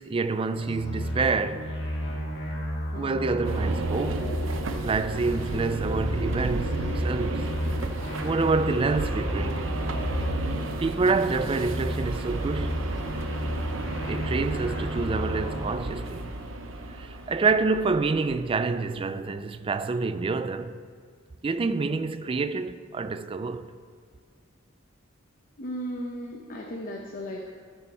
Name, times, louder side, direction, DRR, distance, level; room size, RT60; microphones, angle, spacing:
voice 1, 0.0-1.7 3.0-4.3 4.8-7.5 8.2-9.7 10.8-12.9 14.1-16.3 17.0-20.8 21.4-23.7, right 4 dB, 25° right, 0.3 m, -27 dB
sound 1, 0.5-4.8 5.1-10.8 11.1-15.7, equal, 60° left, 1.9 m, -33 dB
voice 2, 2.9-3.4 25.6-27.5, equal, 45° left, 0.8 m, -36 dB
sound 2, 3.4-18.6, right 2 dB, 70° right, 0.8 m, -33 dB
13.0 x 6.4 x 4.2 m
head